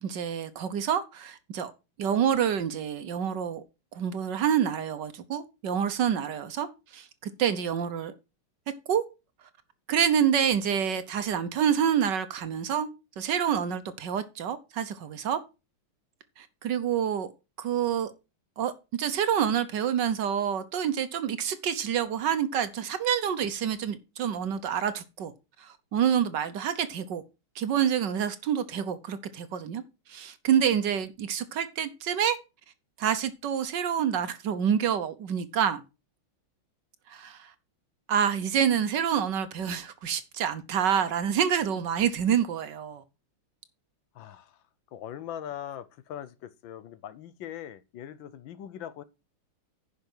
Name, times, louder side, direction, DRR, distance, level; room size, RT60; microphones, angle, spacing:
voice 1, 0.0-1.7 2.0-3.6 3.9-6.7 6.9-8.1 8.9-9.0 9.9-12.9 13.2-15.4 16.4-17.3 17.6-18.1 18.6-18.7 19.0-25.3 25.6-27.2 27.6-29.8 30.1-32.4 33.0-35.8 37.1-37.5 38.1-43.0, right 8 dB, 65° right, 1.4 m, -27 dB
voice 2, 44.1-44.6 44.9-49.0, left 10 dB, 70° left, 1.4 m, -41 dB
9.9 x 5.8 x 6.1 m
omnidirectional pair, 2.3 m